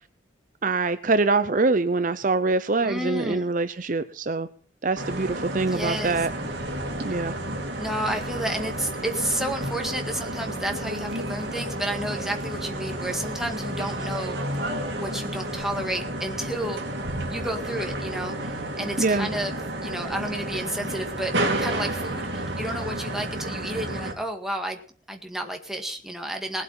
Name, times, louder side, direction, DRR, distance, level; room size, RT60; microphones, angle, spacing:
voice 1, 0.6-4.5 4.8-6.3 7.0-7.4 19.0-19.3, right 3 dB, 40° right, 12 dB, 0.6 m, -24 dB
voice 2, 2.8-3.5 5.7-6.3 7.8-16.8 17.3-21.3 21.6-24.8 25.1-26.6, right 1 dB, ahead, 3 dB, 1.8 m, -31 dB
sound 1, 5.0-24.1, right 1 dB, 60° right, 3.1 m, -31 dB
19.5 x 8.3 x 5.7 m, 0.43 s
head